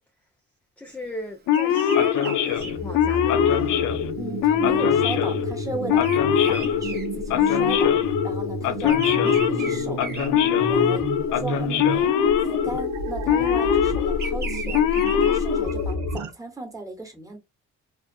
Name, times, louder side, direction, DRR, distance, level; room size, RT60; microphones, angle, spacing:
voice 1, 0.8-3.6, left 1 dB, 5° left, 0.5 m, -38 dB
Male speech man speaking / Siren, 1.5-16.2, left 9 dB, 85° left, 0.5 m, -22 dB
Bird vocalization bird call bird song, 1.5-7.9 8.2-11.0 11.5-11.9 12.8-15.8, right 5 dB, 35° right, 0.8 m, -38 dB
sound 1, 2.6-16.3, right 3 dB, 70° right, 0.7 m, -32 dB
voice 2, 4.2-6.2 6.5-10.0 10.7-11.0 11.3-12.2 12.5-17.4, right 2 dB, 10° right, 1.1 m, -36 dB
2.5 x 2.4 x 2.4 m
cardioid pair, 90°, 30 cm